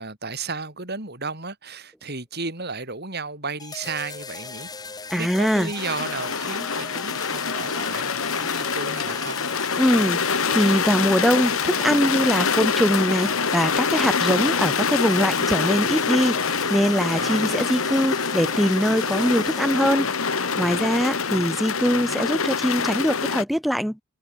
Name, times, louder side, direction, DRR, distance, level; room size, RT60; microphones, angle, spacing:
voice 1, 0.0-4.7 5.1-9.5 14.1-14.4 17.1-17.6 21.9-22.2, right 4 dB, 45° right, 6.1 m, -34 dB
sound 1, 3.6-21.6, left 4 dB, 15° left, 2.2 m, -38 dB
voice 2, 5.1-5.7 9.8-20.1 20.6-24.0, equal, ahead, 0.5 m, -22 dB
sound 2, 5.8-23.4, left 5 dB, 65° left, 1.8 m, -25 dB
head